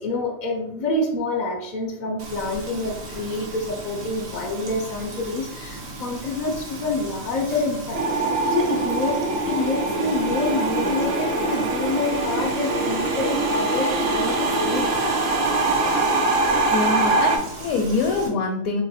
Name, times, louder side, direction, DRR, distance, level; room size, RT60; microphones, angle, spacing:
voice 1, 0.0-8.0 8.5-14.9, left 2 dB, 60° left, 0 dB, 0.4 m, -27 dB
Frying (food), 2.2-18.3, right 2 dB, 75° right, 1.2 m, -37 dB
sound 1, 7.9-17.4, right 2 dB, 60° right, 0.7 m, -23 dB
voice 2, 16.7-18.8, left 4 dB, 75° left, 2 dB, 1.0 m, -24 dB
2.9 x 2.6 x 4.0 m, 0.78 s
omnidirectional pair, 1.4 m